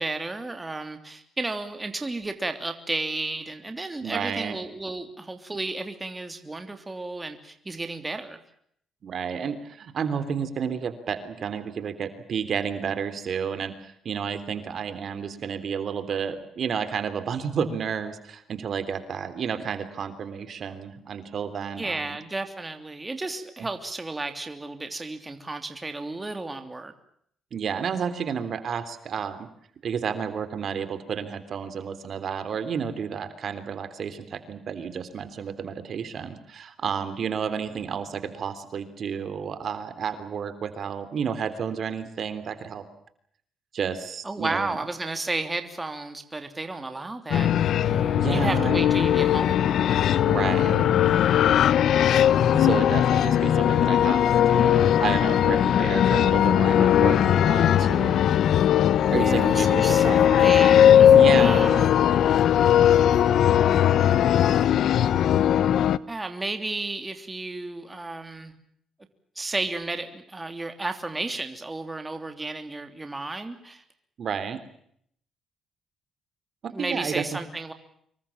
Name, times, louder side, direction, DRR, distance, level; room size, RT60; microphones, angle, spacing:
voice 1, 0.0-8.4 21.8-26.9 44.2-49.8 59.1-61.9 66.1-68.5 69.3-73.8 76.7-77.7, right 2 dB, 20° right, 7 dB, 3.1 m, -33 dB
voice 2, 4.0-4.6 9.0-22.2 27.5-29.5 29.8-42.8 43.7-44.7 48.1-48.8 50.3-50.9 52.5-58.2 59.1-60.2 61.0-61.9 74.2-74.6 76.8-77.2, right 7 dB, 55° right, 11 dB, 3.4 m, -31 dB
sound 1, 47.3-66.0, left 10 dB, 70° left, 1.0 m, -19 dB
26.0 x 23.0 x 7.3 m, 0.68 s
cardioid pair, 90°, 0 cm